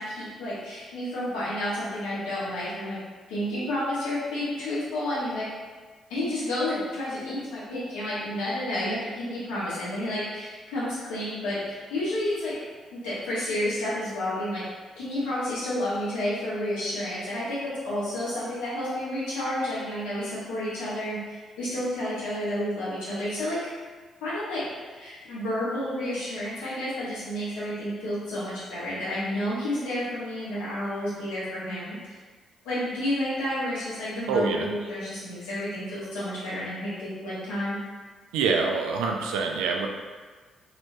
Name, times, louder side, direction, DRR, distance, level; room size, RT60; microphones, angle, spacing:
voice 1, 0.0-3.0 3.3-5.5 6.1-12.5 12.9-14.6 15.0-23.7 24.2-24.7 25.0-32.0 32.6-37.8, left 1 dB, 75° left, -9 dB, 1.2 m, -30 dB
voice 2, 34.3-34.7 38.3-39.9, right 4 dB, 75° right, 1 dB, 0.3 m, -25 dB
3.1 x 2.8 x 2.6 m, 1.5 s
hypercardioid pair, 45°, 0 cm